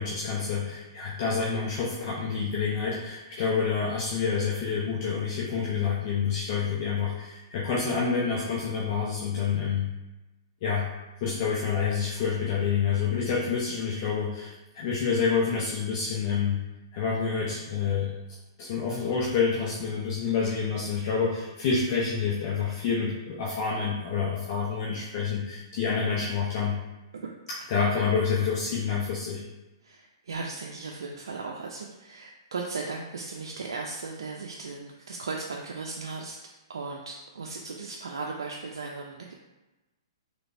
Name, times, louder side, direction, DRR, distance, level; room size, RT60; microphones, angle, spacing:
voice 1, 0.0-9.9 10.6-10.9 11.2-16.6 16.9-18.1 18.6-26.8 27.7-29.4, left 6 dB, 45° left, -5 dB, 0.7 m, -28 dB
voice 2, 29.8-36.4 36.7-39.3, right 4 dB, 85° right, -1 dB, 0.4 m, -37 dB
3.3 x 3.1 x 2.6 m, 1.1 s
hypercardioid pair, 145°, 3 cm